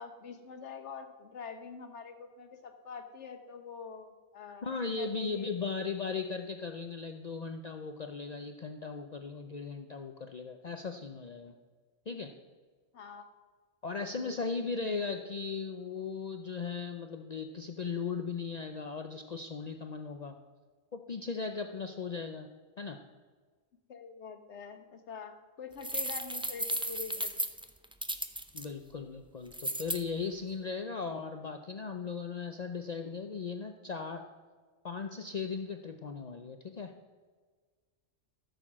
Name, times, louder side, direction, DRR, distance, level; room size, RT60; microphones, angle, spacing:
voice 1, 0.0-5.5 12.9-13.3 13.9-14.6 23.9-27.3, left 6 dB, 85° left, 7 dB, 1.4 m, -46 dB
voice 2, 4.6-11.5 12.1-12.3 13.8-20.3 20.9-22.5 22.8-23.0 28.5-34.2 34.8-36.9, left 5 dB, 45° left, 5 dB, 0.6 m, -37 dB
sound 1, 25.8-28.6 29.5-30.0, right 1 dB, 5° right, 0.4 m, -34 dB
14.0 x 6.8 x 6.0 m, 1.5 s
omnidirectional pair, 1.1 m